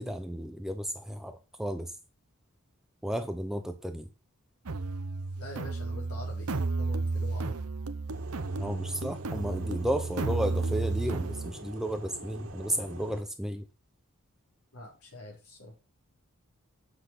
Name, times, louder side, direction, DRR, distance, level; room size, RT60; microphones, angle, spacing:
voice 1, 0.0-1.9 3.0-4.1 8.6-13.6, equal, ahead, 0.7 m, -33 dB
sound 1, 4.7-11.5, right 3 dB, 80° right, 0.8 m, -32 dB
voice 2, 5.4-7.6 14.7-15.8, left 2 dB, 75° left, 4.2 m, -45 dB
sound 2, 8.1-13.2, right 1 dB, 60° right, 2.1 m, -44 dB
7.9 x 6.4 x 5.9 m
head